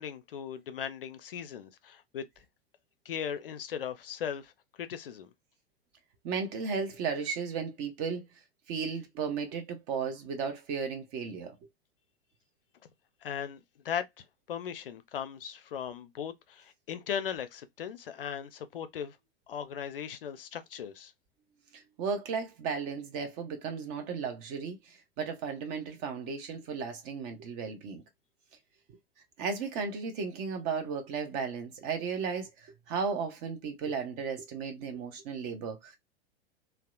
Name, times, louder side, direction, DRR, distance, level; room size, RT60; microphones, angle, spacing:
voice 1, 0.0-2.2 3.1-4.5 4.8-5.3 13.2-19.2 19.5-21.1, left 8 dB, 60° left, 0.4 m, -38 dB
voice 2, 6.2-8.2 8.7-11.6 21.7-28.0 29.4-36.0, right 5 dB, 30° right, 0.6 m, -35 dB
2.8 x 2.0 x 2.2 m
figure-of-eight pair, 100°, 31 cm